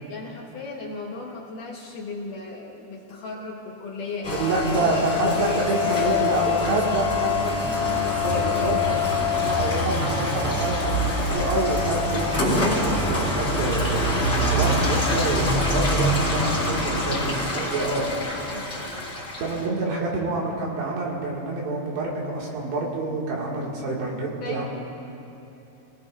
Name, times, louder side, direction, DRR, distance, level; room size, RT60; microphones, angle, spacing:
voice 1, 0.1-8.8 18.5-19.1 24.4-24.7, left 3 dB, 70° left, -2 dB, 2.1 m, -35 dB
Rain, 4.2-19.6, left 2 dB, 20° left, 2.4 m, -24 dB
voice 2, 4.3-7.4 8.2-18.1 19.4-24.7, right 3 dB, 80° right, -3 dB, 4.3 m, -27 dB
27.0 x 18.5 x 2.6 m, 3.0 s
omnidirectional pair, 4.8 m